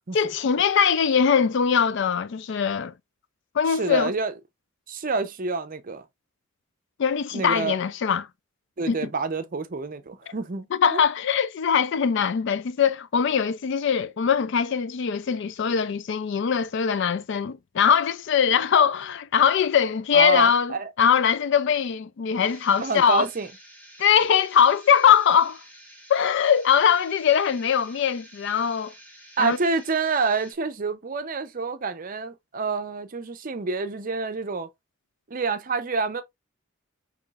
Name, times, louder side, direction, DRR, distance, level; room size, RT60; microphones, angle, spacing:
voice 1, 0.1-2.9 3.5-4.1 7.0-8.3 8.9-9.1 10.7-23.3 24.0-25.6 26.1-28.9 29.4-29.6, left 7 dB, 60° left, 0.4 m, -21 dB
voice 2, 3.8-4.3 4.9-6.0 7.3-7.8 8.8-11.0 20.1-20.9 22.8-23.5 29.4-34.7 35.3-36.2, right 4 dB, 40° right, 0.6 m, -27 dB
sound 1, 22.4-30.5, right 1 dB, 10° left, 1.1 m, -49 dB
5.7 x 3.1 x 2.4 m
head